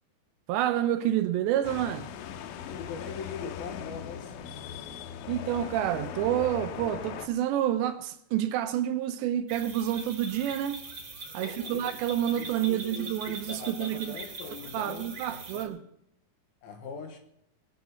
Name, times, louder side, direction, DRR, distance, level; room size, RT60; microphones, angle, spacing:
voice 1, 0.5-2.1 5.3-10.8 11.3-14.1 14.7-15.8, right 11 dB, 75° right, 2.9 m, -28 dB
sound 1, 1.6-7.3, left 9 dB, 90° left, 3.5 m, -39 dB
voice 2, 2.7-4.3 11.4-12.0 12.3-15.9 16.6-17.2, left 6 dB, 65° left, 2.6 m, -42 dB
sound 2, 9.5-15.6, right 3 dB, 35° right, 2.3 m, -42 dB
23.0 x 8.5 x 5.8 m
omnidirectional pair, 5.4 m